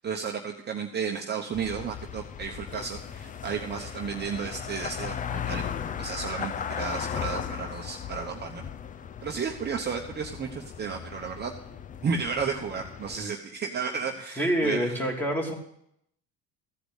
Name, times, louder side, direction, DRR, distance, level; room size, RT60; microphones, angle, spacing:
voice 1, 0.0-5.7 6.0-8.6 9.2-11.5 12.0-15.0, right 6 dB, 30° right, 1 dB, 1.0 m, -33 dB
sound 1, 1.5-13.2, left 8 dB, 25° left, 0.4 m, -37 dB
voice 2, 14.4-15.5, equal, 5° left, 0 dB, 2.7 m, -26 dB
15.0 x 5.1 x 8.1 m, 0.75 s
cardioid pair, 110°, 35 cm